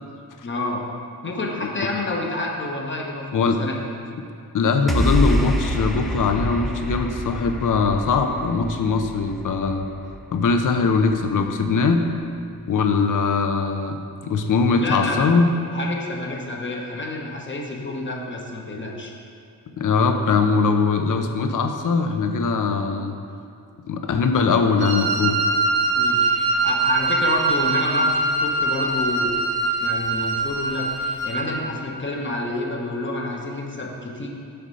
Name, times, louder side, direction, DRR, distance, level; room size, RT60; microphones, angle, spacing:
voice 1, 0.4-0.9 1.2-3.3 3.6-3.8 14.8-15.3 15.7-19.1 25.9-29.3 29.8-34.3, left 2 dB, 30° left, -1 dB, 1.0 m, -29 dB
voice 2, 4.5-9.8 10.3-12.0 12.7-14.0 14.2-15.5 19.8-23.1 23.9-25.4, left 4 dB, 55° left, 6 dB, 0.7 m, -21 dB
sound 1, 4.9-11.3, left 1 dB, ahead, 0.4 m, -26 dB
Wind instrument woodwind instrument, 24.8-31.5, right 3 dB, 85° right, 1.0 m, -22 dB
6.7 x 3.9 x 5.5 m, 2.6 s
cardioid pair, 75°, 37 cm